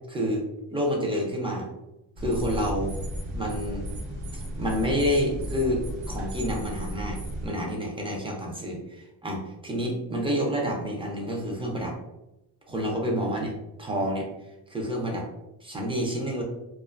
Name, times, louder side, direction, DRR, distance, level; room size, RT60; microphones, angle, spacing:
voice 1, 0.1-0.4 0.7-1.7 2.2-2.9 3.3-3.9 4.6-12.0 12.7-13.5 13.8-14.3 14.7-15.3 15.6-16.4, equal, 15° right, -1 dB, 0.3 m, -28 dB
sound 1, 2.2-7.5, equal, 65° right, 1.0 m, -34 dB
2.4 x 2.3 x 2.3 m, 0.95 s
cardioid pair, 120°, 47 cm